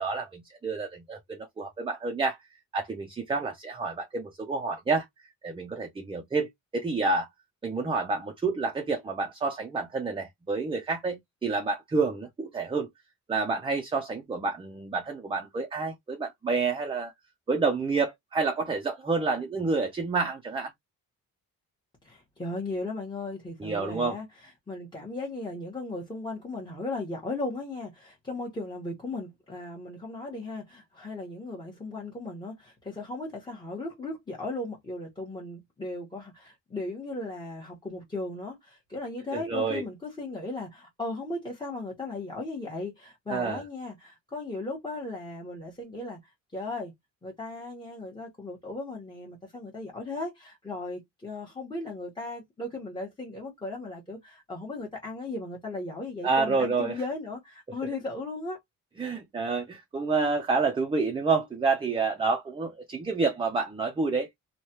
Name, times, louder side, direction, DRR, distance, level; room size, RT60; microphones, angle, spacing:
voice 1, 0.0-2.4 2.7-5.1 5.4-7.3 7.6-12.9 13.3-17.1 17.5-20.7 23.6-24.2 39.3-39.8 43.3-43.6 56.2-57.0 59.0-64.3, right 4 dB, 15° right, 0.5 m, -29 dB
voice 2, 22.0-46.9 47.2-58.6, left 2 dB, 15° left, 1.0 m, -36 dB
3.1 x 2.2 x 2.7 m
cardioid pair, 120°, 30 cm